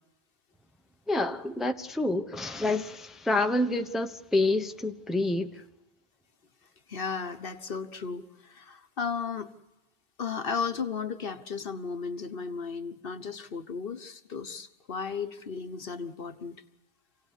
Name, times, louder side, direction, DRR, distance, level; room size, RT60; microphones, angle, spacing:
voice 1, 1.1-5.5, left 2 dB, ahead, 0.9 m, -28 dB
voice 2, 6.9-9.5 10.2-16.6, left 5 dB, 60° left, 1.3 m, -35 dB
27.5 x 18.0 x 8.2 m
omnidirectional pair, 1.1 m